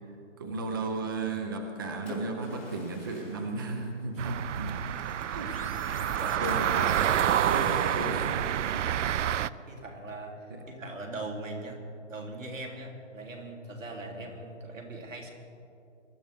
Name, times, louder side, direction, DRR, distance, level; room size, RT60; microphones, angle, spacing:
voice 1, 0.4-4.8 5.3-6.2 6.4-7.0 7.2-9.1 10.5-10.6, right 3 dB, 20° right, 4 dB, 0.6 m, -35 dB
Splash splatter, 1.5-4.7 6.5-8.4, left 1 dB, 5° left, 3.9 m, -48 dB
sound 1, 4.2-9.5, right 10 dB, 70° right, 0.5 m, -28 dB
sound 2, 4.6-8.9, left 4 dB, 30° left, 0.5 m, -50 dB
voice 2, 5.9-6.6 9.2-11.8 12.1-15.3, right 2 dB, 90° right, 1 dB, 3.4 m, -41 dB
23.0 x 13.0 x 3.6 m, 2.5 s
hypercardioid pair, 160°, 38 cm